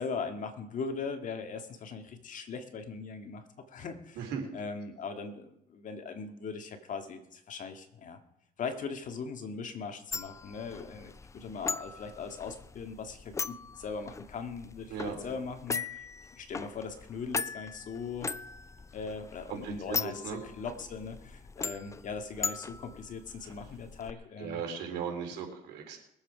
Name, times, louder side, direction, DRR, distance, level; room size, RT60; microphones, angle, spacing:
voice 1, 0.0-3.4 3.7-8.2 8.6-16.0 16.3-18.3 18.9-24.6, left 5 dB, 50° left, 6 dB, 1.9 m, -40 dB
sound 1, 10.1-24.1, left 4 dB, 15° left, 0.4 m, -40 dB
voice 2, 19.5-20.4 24.4-26.0, right 6 dB, 85° right, 1 dB, 3.7 m, -37 dB
22.0 x 7.7 x 5.0 m, 0.78 s
cardioid pair, 110°, 17 cm